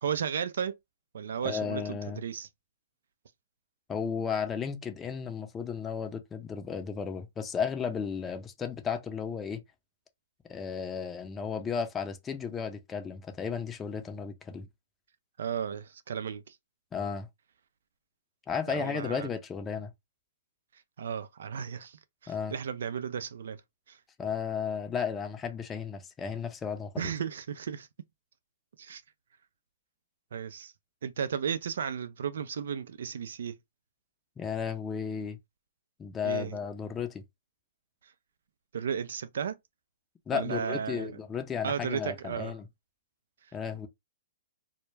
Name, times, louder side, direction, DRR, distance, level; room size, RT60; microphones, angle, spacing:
voice 1, 0.0-0.8 1.1-2.5 15.4-16.6 18.7-19.3 21.0-22.0 22.2-23.6 23.9-24.0 27.0-27.9 28.8-29.0 30.3-30.7 31.0-33.5 36.2-36.6 38.7-39.6 40.3-41.1 41.6-42.5, right 7 dB, 70° right, 0.3 m, -34 dB
voice 2, 1.4-2.2 3.9-9.6 10.5-14.7 16.9-17.3 18.5-19.9 22.3-22.5 24.2-27.1 34.4-35.4 36.0-37.2 40.3-42.7 43.5-43.9, left 6 dB, 15° left, 0.5 m, -34 dB
2.2 x 2.1 x 3.1 m
hypercardioid pair, 130°, 0 cm